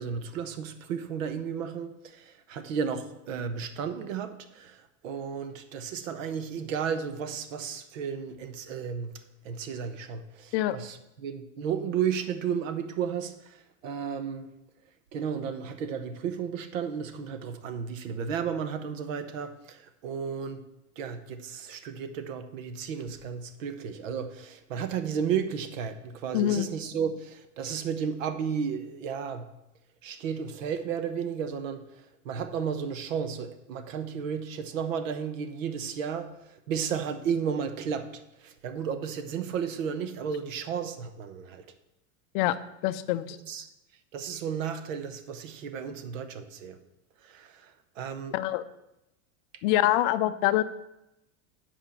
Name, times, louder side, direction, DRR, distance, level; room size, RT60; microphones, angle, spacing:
voice 1, 0.0-14.5 15.1-20.6 21.0-29.5 30.0-41.6 43.4-43.7 44.1-46.8 47.2-48.4, right 7 dB, 85° right, 1.1 m, -33 dB
voice 2, 26.3-26.7 42.3-42.6 42.8-43.4 48.3-48.6 49.6-50.6, left 14 dB, 45° left, 0.5 m, -25 dB
7.9 x 5.0 x 7.1 m
supercardioid pair, 160°, 38 cm